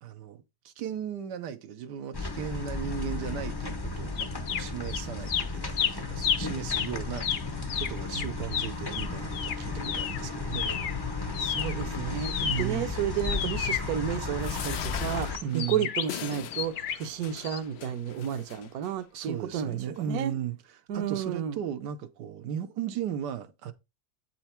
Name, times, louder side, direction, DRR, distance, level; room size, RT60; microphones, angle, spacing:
voice 1, 0.0-7.3 7.8-10.7 12.4-12.9 14.5-14.7 15.4-15.9 19.1-23.7, right 9 dB, 85° right, 1.4 m, -36 dB
sound 1, 2.1-15.4, left 3 dB, 35° left, 0.4 m, -34 dB
sound 2, 4.2-5.0 5.3-11.0 11.3-14.6 15.3-17.1 17.4-17.6, left 8 dB, 60° left, 0.8 m, -32 dB
voice 2, 11.4-20.3 20.9-21.6, right 9 dB, 65° right, 1.2 m, -32 dB
sound 3, 14.4-18.9 19.6-19.7 20.0-20.1, left 11 dB, 80° left, 1.3 m, -41 dB
8.1 x 4.5 x 4.3 m
omnidirectional pair, 1.8 m